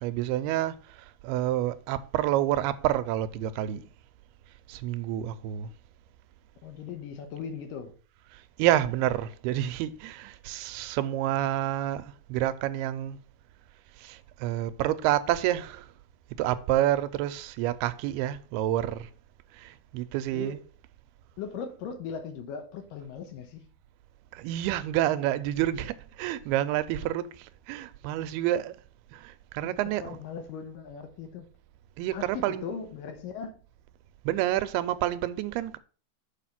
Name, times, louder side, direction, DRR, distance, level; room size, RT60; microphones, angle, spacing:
voice 1, 0.0-3.9 4.7-5.7 8.3-13.2 14.0-15.9 16.4-19.1 19.5-20.6 24.3-28.8 29.1-30.2 32.0-32.8 34.3-35.8, right 13 dB, 90° right, 2.6 m, -29 dB
voice 2, 6.6-7.9 20.3-20.6 21.4-23.7 29.6-31.5 32.1-33.5, left 6 dB, 70° left, 2.5 m, -39 dB
6.8 x 4.9 x 5.8 m
omnidirectional pair, 4.4 m